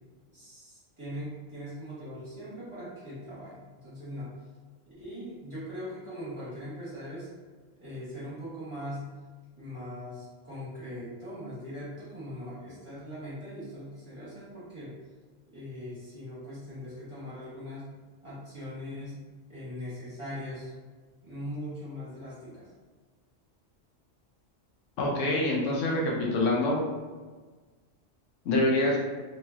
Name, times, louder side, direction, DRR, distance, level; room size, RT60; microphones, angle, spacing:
voice 1, 0.3-4.3 5.0-7.3 7.8-9.1 9.5-14.9 15.5-17.9 18.2-19.2 19.5-20.7 21.2-22.7, equal, 25° right, -10 dB, 0.9 m, -40 dB
voice 2, 25.0-26.8 28.4-29.0, left 1 dB, 85° left, -2 dB, 1.0 m, -25 dB
2.9 x 2.7 x 2.3 m, 1.4 s
omnidirectional pair, 1.3 m